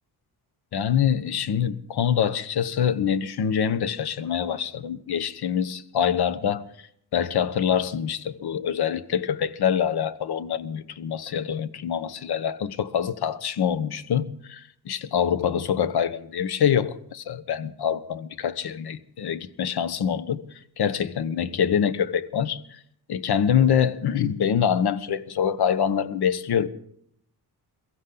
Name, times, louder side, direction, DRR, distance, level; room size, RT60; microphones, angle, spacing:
voice 1, 0.7-6.7 7.1-20.4 20.8-22.6 23.1-26.7, left 8 dB, 70° left, 1.1 m, -25 dB
23.0 x 15.0 x 3.9 m
cardioid pair, 115°, 40 cm